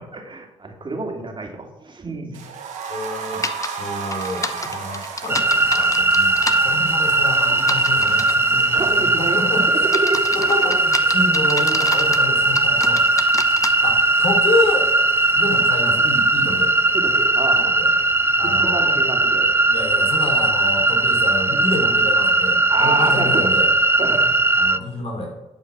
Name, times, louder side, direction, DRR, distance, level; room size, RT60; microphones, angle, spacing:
voice 1, 0.0-2.4 8.5-9.4 9.7-10.4 16.9-17.8 18.4-19.5 22.7-23.5 24.0-24.3 24.6-24.7, right 3 dB, 40° right, 2 dB, 2.5 m, -28 dB
sound 1, 2.3-18.2 18.4-18.5 18.9-19.0, right 6 dB, 80° right, 1.6 m, -36 dB
voice 2, 2.9-3.4 3.8-9.9 10.3-13.0 13.8-14.9 15.3-16.8 17.7-17.9 18.4-19.0 19.7-23.7 24.6-25.3, left 2 dB, 50° left, 1 dB, 3.3 m, -28 dB
sound 2, 3.4-3.7 4.1-6.6 7.6-8.4 9.0-9.3 9.8-12.2 12.6-13.7, left 3 dB, 25° left, 0.9 m, -28 dB
sound 3, 5.3-24.8, right 2 dB, 20° right, 0.6 m, -18 dB
11.5 x 5.6 x 6.0 m, 0.95 s
supercardioid pair, 50°, 13 cm